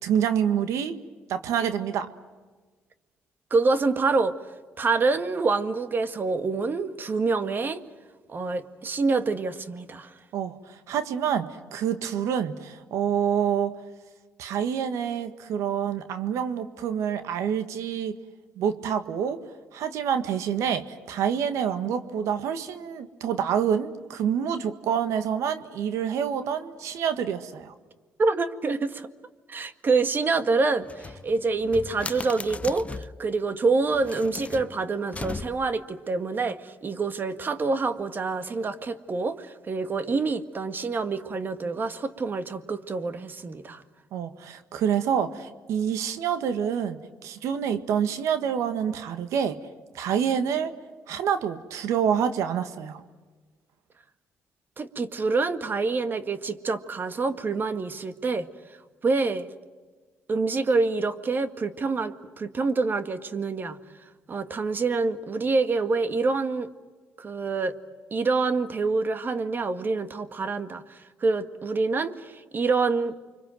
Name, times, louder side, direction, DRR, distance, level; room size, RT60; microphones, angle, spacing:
voice 1, 0.0-1.0 1.3-2.1 10.3-13.7 14.4-18.2 18.6-19.4 19.7-27.7 44.1-49.6 49.9-50.7 51.1-53.0, right 8 dB, 80° right, 10 dB, 1.6 m, -27 dB
voice 2, 3.5-4.4 4.8-7.8 8.3-10.1 28.2-29.1 29.5-43.8 54.8-58.5 59.0-59.5 60.3-63.8 64.3-66.7 67.2-67.8 68.1-73.2, right 3 dB, 40° right, 10 dB, 1.9 m, -26 dB
sound 1, 30.8-33.2 33.9-35.8, left 4 dB, 25° left, 0.8 m, -38 dB
29.5 x 25.0 x 7.8 m, 1.4 s
cardioid pair, 75°, 5 cm